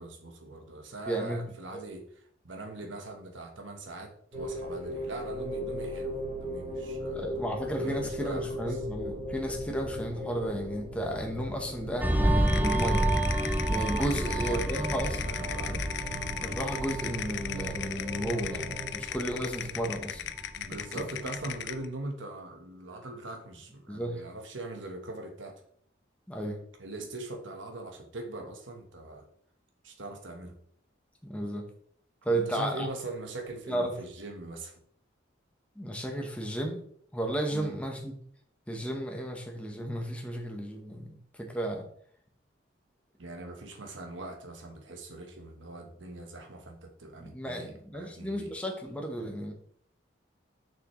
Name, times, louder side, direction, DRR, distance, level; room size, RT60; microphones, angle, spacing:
voice 1, 0.0-7.2 7.8-8.8 14.0-16.0 20.6-25.6 26.8-29.3 29.8-30.6 32.3-34.8 37.5-37.8 43.2-48.5, right 2 dB, 85° right, 4 dB, 1.2 m, -41 dB
voice 2, 1.1-1.4 1.7-1.8 7.1-13.0 13.7-15.2 15.7-15.8 16.4-20.2 20.7-21.0 23.9-24.2 26.3-26.6 31.2-31.6 32.2-32.9 33.7-33.9 35.8-36.8 37.1-38.1 38.7-41.8 47.2-49.5, right 1 dB, 5° left, 1 dB, 1.0 m, -33 dB
sound 1, 4.3-18.9, equal, 40° right, 2.6 m, -38 dB
sound 2, 12.0-21.0 21.4-21.6, right 1 dB, 10° right, 0.5 m, -30 dB
sound 3, 12.5-21.9, left 10 dB, 60° left, 0.4 m, -37 dB
6.6 x 6.0 x 3.2 m, 0.62 s
head